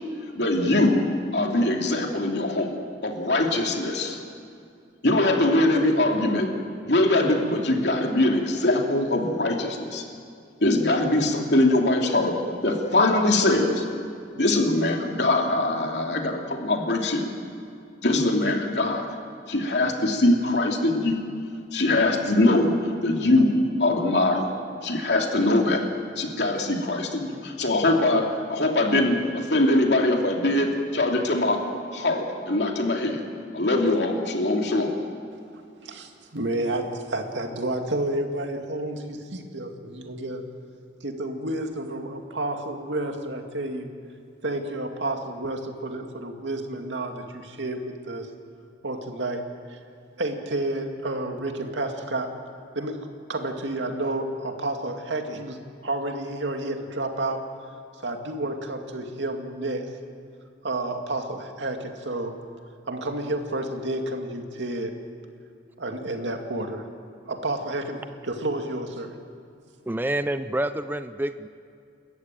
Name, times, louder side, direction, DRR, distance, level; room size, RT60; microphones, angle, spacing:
voice 1, 0.3-1.0 1.3-2.8 3.0-4.2 5.0-6.5 6.9-10.0 10.6-13.9 14.3-17.3 18.0-19.1 19.5-21.2 21.7-22.8 23.0-24.5 24.8-25.8 26.2-31.7 31.9-33.2 33.5-35.0, left 2 dB, 65° left, 1 dB, 2.8 m, -22 dB
voice 2, 35.8-40.4 41.0-43.9 44.4-48.3 48.8-49.4 49.7-49.8 50.2-52.3 52.8-57.4 58.0-59.9 60.6-62.3 62.9-64.9 65.8-66.9 67.3-69.2, right 2 dB, 90° right, 4 dB, 2.3 m, -30 dB
voice 3, 69.9-71.5, right 1 dB, 10° right, 11 dB, 0.5 m, -27 dB
29.0 x 14.0 x 9.0 m, 2.4 s
head